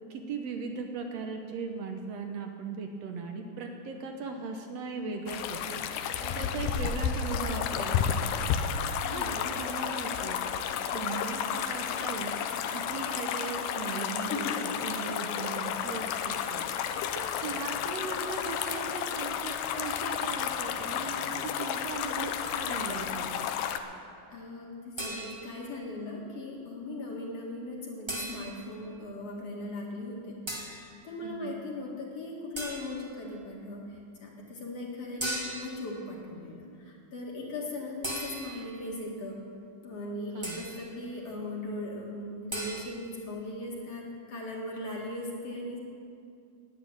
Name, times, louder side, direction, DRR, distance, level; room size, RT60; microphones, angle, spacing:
voice 1, 0.1-8.2 9.1-23.5 31.2-31.6 40.3-40.6, right 4 dB, 70° right, 4 dB, 1.7 m, -38 dB
sound 1, 5.3-23.8, left 8 dB, 80° left, 2.2 m, -32 dB
voice 2, 9.1-9.5 14.0-14.7 24.3-30.4 30.8-39.4 39.8-45.8, left 2 dB, 55° left, -2 dB, 2.6 m, -39 dB
sound 2, 25.0-25.7 28.1-28.7 30.5-30.9 32.6-33.1 35.2-35.9 38.0-38.8 40.4-40.9 42.5-42.8, right 1 dB, 20° right, 0.6 m, -37 dB
10.5 x 9.3 x 8.8 m, 2.4 s
omnidirectional pair, 3.8 m